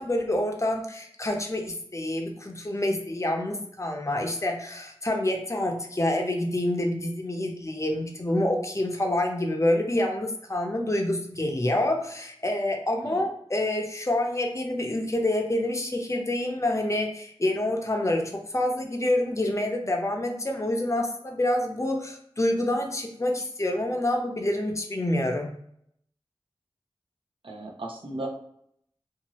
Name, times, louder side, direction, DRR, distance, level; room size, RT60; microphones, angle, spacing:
voice 1, 0.0-25.5, left 1 dB, 30° left, 2 dB, 0.7 m, -27 dB
voice 2, 27.4-28.3, right 2 dB, 60° right, 0 dB, 0.7 m, -36 dB
2.8 x 2.5 x 3.0 m, 0.70 s
cardioid pair, 40°, 10 cm